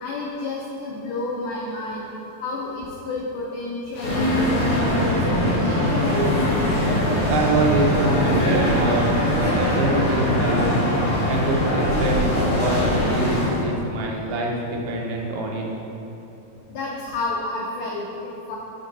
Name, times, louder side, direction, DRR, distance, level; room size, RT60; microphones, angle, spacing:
voice 1, 0.0-2.1 2.4-6.3 16.7-18.6, left 2 dB, 90° left, -3 dB, 1.7 m, -30 dB
sound 1, 3.9-4.9 6.1-9.4, left 2 dB, 70° left, 2.0 m, -40 dB
sound 2, 4.0-13.6, equal, 50° left, 1.8 m, -21 dB
voice 2, 7.3-10.7 11.3-15.6, right 1 dB, 85° right, -1 dB, 2.9 m, -25 dB
7.9 x 3.7 x 5.3 m, 2.9 s
omnidirectional pair, 4.4 m